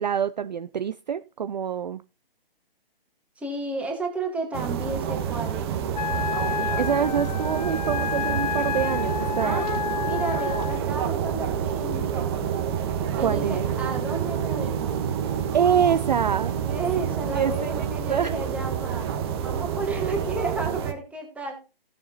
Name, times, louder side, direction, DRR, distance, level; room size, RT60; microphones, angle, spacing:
voice 1, 0.0-2.0 6.8-9.7 13.2-13.7 15.5-16.5 17.3-18.3, right 8 dB, 45° right, 0.5 m, -26 dB
voice 2, 3.4-5.8 9.4-9.8 10.1-12.6 13.2-15.0 16.6-19.1 19.4-21.6, right 3 dB, 5° right, 2.3 m, -33 dB
sound 1, 4.5-20.9, right 8 dB, 25° right, 1.3 m, -28 dB
Wind instrument woodwind instrument, 5.9-10.8, left 8 dB, 45° left, 0.6 m, -30 dB
16.5 x 7.0 x 2.7 m
figure-of-eight pair, 140°, 30 cm